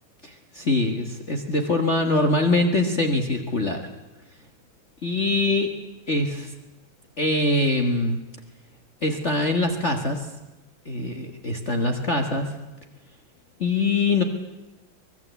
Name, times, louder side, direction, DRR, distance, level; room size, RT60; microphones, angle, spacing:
voice 1, 0.2-3.8 5.0-5.7 6.1-6.5 7.2-8.2 9.0-10.3 10.9-12.5 13.6-14.2, left 2 dB, 35° left, 4 dB, 1.9 m, -23 dB
25.0 x 20.5 x 8.3 m, 1.1 s
omnidirectional pair, 2.2 m